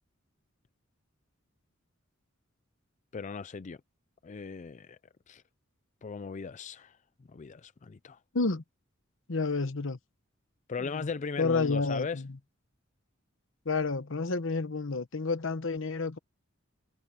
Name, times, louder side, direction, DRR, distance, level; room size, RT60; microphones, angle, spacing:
voice 1, 3.1-3.8 4.2-5.0 5.3-5.4 6.0-7.0 7.3-8.2 10.7-12.2, left 5 dB, 35° left, 0.4 m, -38 dB
voice 2, 9.3-10.0 10.8-11.1 11.4-12.3 13.6-16.2, left 3 dB, 65° left, 1.1 m, -30 dB
head